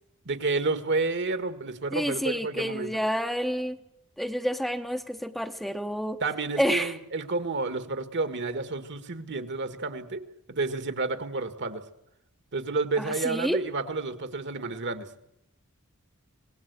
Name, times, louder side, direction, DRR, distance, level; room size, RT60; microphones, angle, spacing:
voice 1, 0.2-2.9 6.2-11.8 12.5-15.3, right 3 dB, 55° right, 10 dB, 1.7 m, -30 dB
voice 2, 1.9-3.8 4.2-6.2 6.6-6.9 13.0-13.6, equal, ahead, 6 dB, 0.9 m, -29 dB
26.0 x 18.5 x 8.2 m, 0.80 s
head